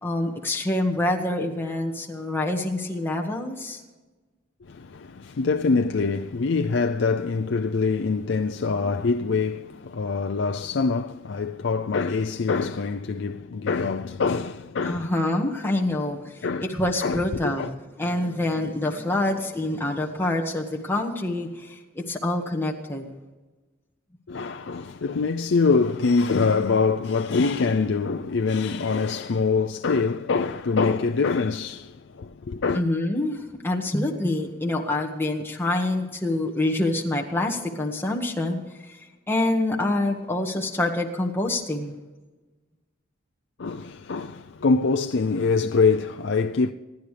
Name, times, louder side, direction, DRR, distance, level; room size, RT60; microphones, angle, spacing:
voice 1, 0.0-3.8 14.8-23.1 32.7-38.6 38.9-41.9, left 1 dB, 10° left, 1.7 m, -26 dB
voice 2, 4.6-15.1 16.4-16.7 17.0-17.7 24.3-32.8 43.6-46.7, left 4 dB, 65° left, 0.5 m, -24 dB
27.5 x 10.5 x 3.4 m
head